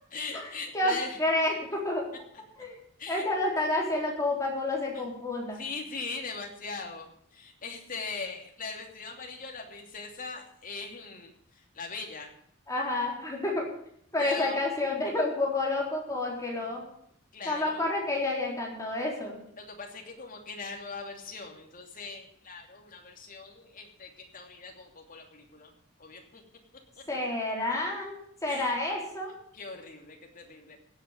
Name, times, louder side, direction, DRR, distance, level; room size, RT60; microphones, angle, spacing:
voice 1, 0.1-1.5 3.0-3.3 4.9-5.0 5.5-12.3 14.2-14.6 16.4-16.7 17.3-17.8 19.6-25.7 26.0-26.4 26.9-27.0 28.5-28.8 29.5-30.8, left 4 dB, 45° left, 2 dB, 2.8 m, -40 dB
voice 2, 0.7-2.1 2.6-2.8 3.1-5.6 12.7-13.7 14.1-16.8 17.5-19.4 27.1-29.3, left 2 dB, 15° left, -2 dB, 3.9 m, -29 dB
16.5 x 8.3 x 6.5 m, 0.67 s
head